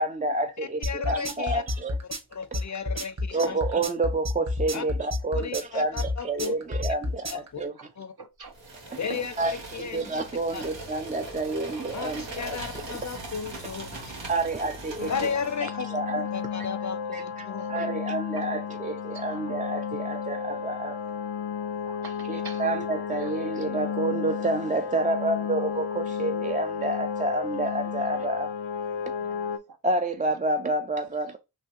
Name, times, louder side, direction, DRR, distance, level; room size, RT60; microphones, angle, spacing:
voice 1, 0.0-2.0 3.3-7.7 9.1-13.0 13.9-15.3 15.6-16.3 17.1-21.0 22.3-28.5 29.8-31.4, right 2 dB, 20° right, 0.3 m, -29 dB
sound 1, 0.8-7.5, left 2 dB, 35° right, 1.3 m, -29 dB
voice 2, 0.9-1.6 2.3-3.6 4.7-4.8 5.3-6.5 7.3-7.6 8.0-8.1 8.9-10.1 10.5-10.6 11.9-14.2 15.1-15.9 16.3-17.7, left 6 dB, 40° left, 0.5 m, -34 dB
voice 3, 8.2-8.5 9.0-9.2 12.4-12.5 14.2-14.3 17.6-17.8 19.1-19.2 21.9-22.6 23.2-23.3 27.8-27.9 29.2-29.8, right 5 dB, 55° right, 0.8 m, -45 dB
sound 2, 8.5-15.6, right 2 dB, 80° right, 1.2 m, -40 dB
sound 3, 15.0-29.6, left 7 dB, 85° left, 0.6 m, -33 dB
3.3 x 3.0 x 2.8 m
cardioid pair, 50°, 44 cm